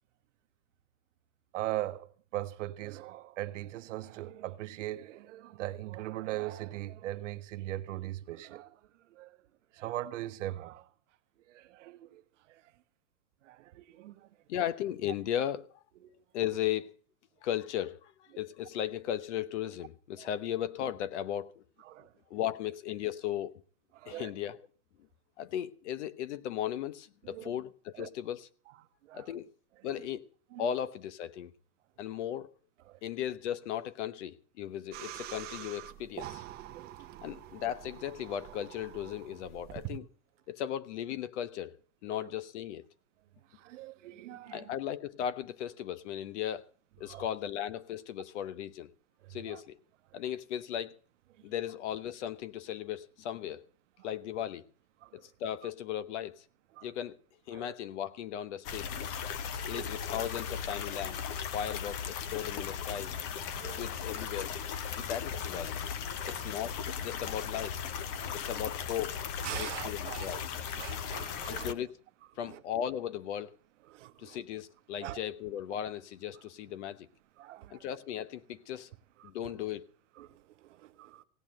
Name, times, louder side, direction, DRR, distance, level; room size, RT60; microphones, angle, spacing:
voice 1, 1.5-8.8 9.1-9.4 9.7-10.9 11.5-12.2 12.5-12.7 13.4-14.3 16.0-16.2 20.2-20.3 21.8-22.1 23.9-24.3 27.2-27.5 28.0-28.1 29.0-29.3 30.5-30.7 32.9-33.0 36.7-37.3 42.1-42.3 43.5-44.8 47.0-47.3 49.2-49.6 50.1-50.2 54.0-54.1 55.0-55.3 56.8-56.9 57.5-57.7 59.3-59.9 63.5-63.9 64.9-65.1 66.1-66.5 67.1-67.2 68.1-68.5 69.4-70.5 70.7-71.8 72.4-72.6 73.9-74.4 75.0-75.2 77.4-77.8 79.2-79.5 80.2-81.2, right 15 dB, 55° right, 1.1 m, -41 dB
voice 2, 14.5-15.7 16.3-16.9 17.4-21.6 22.3-23.5 24.1-24.6 25.4-28.5 29.1-29.5 29.8-30.3 30.6-31.5 32.0-32.5 33.0-36.4 37.2-40.1 40.5-41.7 42.0-42.8 44.5-46.7 47.0-48.9 49.3-49.8 50.1-51.0 51.4-53.6 54.0-54.6 55.1-56.4 56.8-57.2 57.5-58.9 59.7-61.2 61.5-63.1 63.6-64.5 65.0-65.8 66.2-66.7 67.0-67.8 68.3-69.2 69.5-70.4 71.5-71.9 72.4-73.5 74.2-77.1 77.7-78.9 79.2-79.8, left 10 dB, 50° left, 1.0 m, -36 dB
sound 1, 34.9-40.0, right 14 dB, 20° right, 0.8 m, -45 dB
sound 2, 58.6-71.7, left 7 dB, 25° left, 0.7 m, -37 dB
17.0 x 8.9 x 7.5 m
hypercardioid pair, 150°, 45 cm